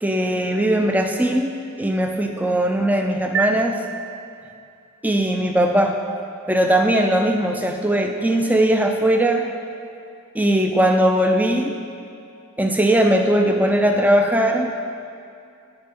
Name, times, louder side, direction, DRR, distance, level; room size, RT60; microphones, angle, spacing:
voice 1, 0.0-3.8 5.0-6.0 6.5-9.5 10.3-11.7 12.6-14.7, right 1 dB, 5° right, 4 dB, 0.5 m, -19 dB
sound 1, 3.3-4.8, right 5 dB, 60° right, 0.4 m, -28 dB
10.5 x 9.7 x 4.6 m, 2.5 s
head